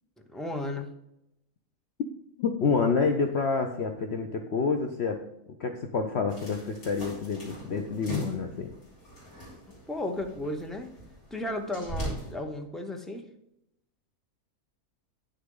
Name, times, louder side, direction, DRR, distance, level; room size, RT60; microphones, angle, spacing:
voice 1, 0.3-0.9 9.9-10.9 11.3-13.3, left 1 dB, ahead, 4 dB, 0.5 m, -34 dB
voice 2, 2.4-5.2 5.6-8.7, left 5 dB, 55° left, 5 dB, 0.9 m, -28 dB
sound 1, 6.3-12.3, equal, 70° left, 3.8 m, -40 dB
9.3 x 6.6 x 3.8 m, 0.84 s
omnidirectional pair, 1.6 m